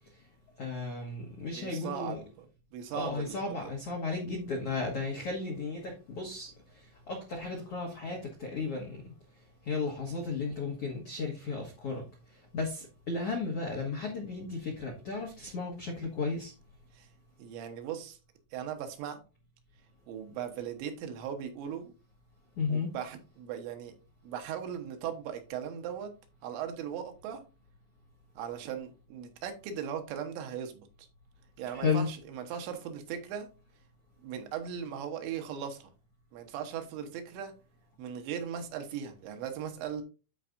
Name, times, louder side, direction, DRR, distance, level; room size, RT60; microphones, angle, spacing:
voice 1, 0.6-2.2 2.9-9.0 9.6-12.0 12.5-16.5 22.6-22.9 31.7-32.1, left 4 dB, 75° left, 1.3 m, -34 dB
voice 2, 1.5-2.5 2.7-3.7 16.9-17.1 17.4-18.2 18.5-19.2 20.1-21.9 22.7-23.9 24.2-26.1 26.4-27.4 28.4-31.1 31.6-33.5 34.2-35.9 36.3-37.5 38.0-40.0, right 8 dB, 80° right, 3.4 m, -38 dB
13.0 x 4.7 x 2.6 m
omnidirectional pair, 5.1 m